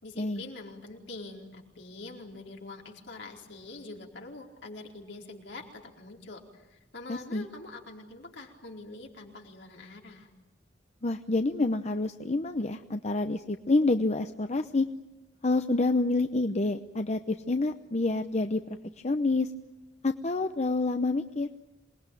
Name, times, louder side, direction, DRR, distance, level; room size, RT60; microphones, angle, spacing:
voice 1, 0.0-10.3, left 2 dB, 70° left, 1 dB, 4.4 m, -45 dB
voice 2, 7.1-7.5 11.0-14.9 15.4-18.8 19.0-19.5 20.0-21.5, left 2 dB, 40° left, 8 dB, 0.8 m, -28 dB
27.5 x 20.5 x 9.1 m, 1.0 s
head